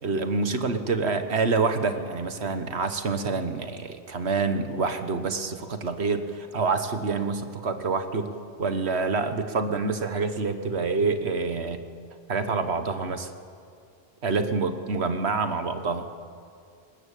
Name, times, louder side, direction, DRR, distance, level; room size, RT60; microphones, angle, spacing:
voice 1, 0.0-8.3 8.6-11.8 12.3-13.3 14.2-16.1, right 4 dB, 70° right, 8 dB, 1.6 m, -27 dB
20.0 x 19.5 x 8.5 m, 2.4 s
omnidirectional pair, 1.1 m